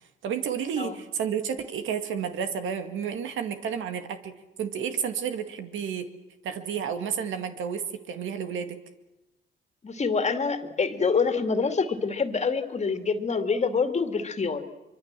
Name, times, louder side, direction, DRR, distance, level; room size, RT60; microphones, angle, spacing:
voice 1, 0.2-6.1 6.4-8.8, right 7 dB, 80° right, 8 dB, 2.1 m, -31 dB
voice 2, 9.8-14.6, left 5 dB, 35° left, 8 dB, 2.3 m, -26 dB
24.5 x 24.0 x 7.5 m, 0.98 s
cardioid pair, 90°, 20 cm